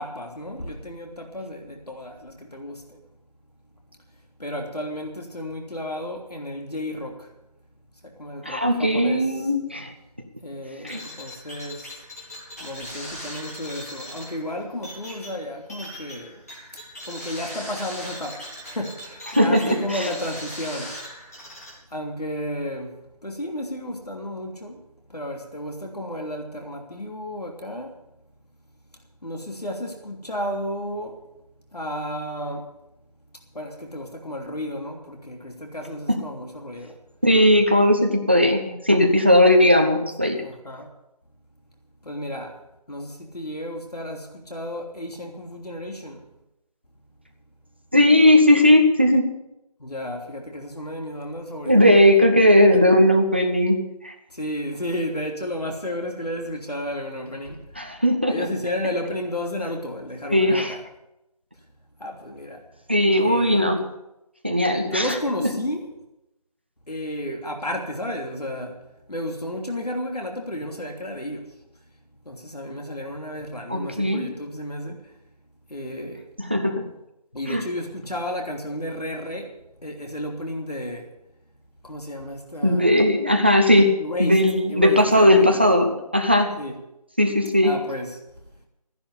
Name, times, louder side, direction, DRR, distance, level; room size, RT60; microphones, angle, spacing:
voice 1, 0.0-3.0 4.4-7.3 8.2-9.3 10.4-12.0 12.6-16.4 17.0-21.0 21.9-24.8 25.1-27.9 29.2-31.2 31.7-32.7 33.5-37.0 40.4-40.9 42.0-42.6 42.9-46.2 49.8-52.2 54.3-57.7 58.3-60.8 62.0-62.6 63.2-63.8 64.8-65.9 66.9-68.8 69.1-71.5 72.2-75.1 75.7-76.3 77.3-81.1 81.8-83.0 83.7-84.4 84.7-85.7 86.6-86.8 87.6-88.2, left 1 dB, 75° left, 2 dB, 3.0 m, -32 dB
voice 2, 8.4-9.9 10.9-11.0 19.3-20.1 37.2-40.4 47.9-49.2 51.6-54.1 57.8-58.5 60.3-60.8 62.9-63.9 64.4-65.1 65.4-65.5 73.7-74.3 76.4-76.8 77.5-77.6 82.6-83.9 84.2-86.5 87.2-87.7, left 1 dB, 15° right, 4 dB, 0.7 m, -18 dB
sound 1, 10.9-21.7, equal, 25° left, 3.3 m, -39 dB
15.0 x 10.5 x 7.0 m, 0.89 s
figure-of-eight pair, 170°, 20 cm